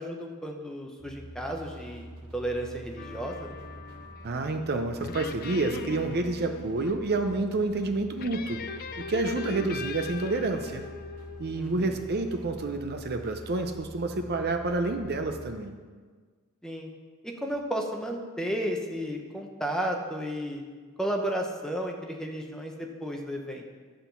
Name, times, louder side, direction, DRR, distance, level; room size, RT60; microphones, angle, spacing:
voice 1, 0.0-3.5 11.5-12.0 16.6-16.9 17.2-20.6 21.0-23.6, equal, 5° left, 1 dB, 0.8 m, -33 dB
sound 1, 1.0-15.5, right 1 dB, 80° right, 1.6 m, -46 dB
sound 2, 3.0-4.4 5.0-7.0 8.2-11.7, left 5 dB, 40° left, 0.4 m, -40 dB
voice 2, 4.2-8.6 9.0-10.8 11.4-15.7, right 3 dB, 45° right, 6 dB, 0.6 m, -29 dB
11.5 x 3.9 x 6.9 m, 1.5 s
head